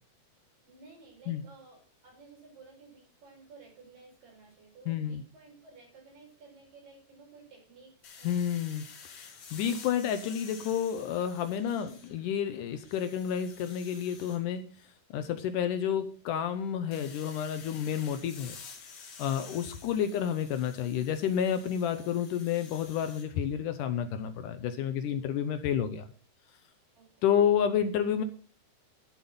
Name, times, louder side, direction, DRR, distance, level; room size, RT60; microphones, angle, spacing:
voice 1, 0.7-8.3 27.0-27.3, right 4 dB, 60° right, -1 dB, 6.9 m, -55 dB
voice 2, 4.9-5.2 8.2-8.9 9.1-18.6 19.2-26.1 27.2-28.2, left 9 dB, 75° left, 9 dB, 2.0 m, -30 dB
sound 1, 8.0-12.3 12.7-14.4 16.9-23.3, left 5 dB, 50° left, 2.1 m, -50 dB
12.0 x 7.3 x 5.6 m, 0.43 s
omnidirectional pair, 4.5 m